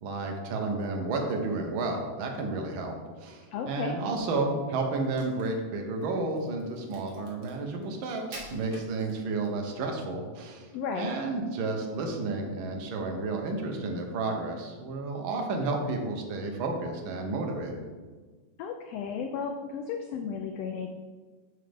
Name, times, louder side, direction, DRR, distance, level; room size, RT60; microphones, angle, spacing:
voice 1, 0.0-10.7 10.9-17.8, right 3 dB, 65° right, 2 dB, 1.2 m, -31 dB
voice 2, 3.5-3.9 10.7-11.1 18.6-20.9, left 6 dB, 85° left, 4 dB, 1.4 m, -34 dB
Crack, 5.0-9.6, right 1 dB, 50° right, 1.3 m, -49 dB
7.6 x 5.6 x 3.5 m, 1.4 s
omnidirectional pair, 3.4 m